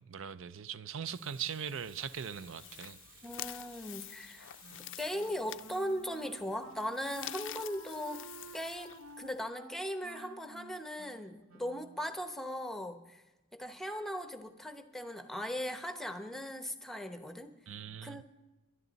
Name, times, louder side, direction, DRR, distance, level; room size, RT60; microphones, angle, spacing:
voice 1, 0.0-3.0 17.7-18.2, right 8 dB, 60° right, 0.5 m, -40 dB
Water tap faucet / Sink (filling or washing), 1.1-5.9 8.3-8.5, right 3 dB, 40° right, 2.0 m, -59 dB
sound 1, 1.7-9.4, left 14 dB, 60° left, 0.4 m, -48 dB
voice 2, 3.2-4.5 5.0-8.2 8.5-13.2 13.5-17.5 18.0-18.2, equal, ahead, 0.8 m, -39 dB
Wind instrument woodwind instrument, 4.6-12.1, right 2 dB, 80° right, 0.9 m, -53 dB
23.0 x 11.0 x 4.0 m
head